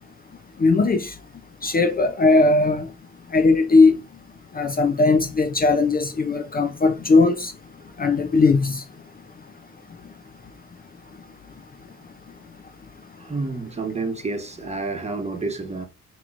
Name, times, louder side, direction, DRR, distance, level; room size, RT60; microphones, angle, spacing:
voice 1, 0.6-1.1 1.6-2.9 3.3-4.0 4.6-7.5 8.0-8.8, left 3 dB, 30° left, 0.6 m, -18 dB
voice 2, 13.2-15.9, right 3 dB, 20° right, 1.2 m, -29 dB
5.6 x 3.0 x 2.5 m
cardioid pair, 90°, 30 cm